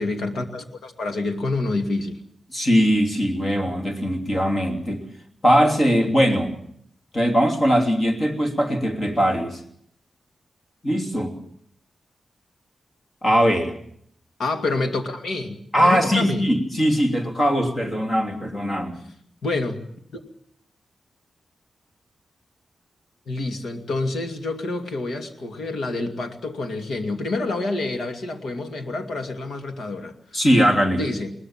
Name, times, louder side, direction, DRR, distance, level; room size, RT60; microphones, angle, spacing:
voice 1, 0.0-2.2 14.4-16.5 19.4-19.8 20.1-20.2 23.3-30.1 30.9-31.3, left 2 dB, 75° left, 5 dB, 2.5 m, -27 dB
voice 2, 2.5-5.0 5.4-6.5 7.1-9.6 10.8-11.3 13.2-13.7 15.7-19.0 30.3-31.0, equal, 25° left, 2 dB, 3.0 m, -20 dB
21.5 x 19.0 x 7.4 m, 0.66 s
wide cardioid pair, 150°, 0 cm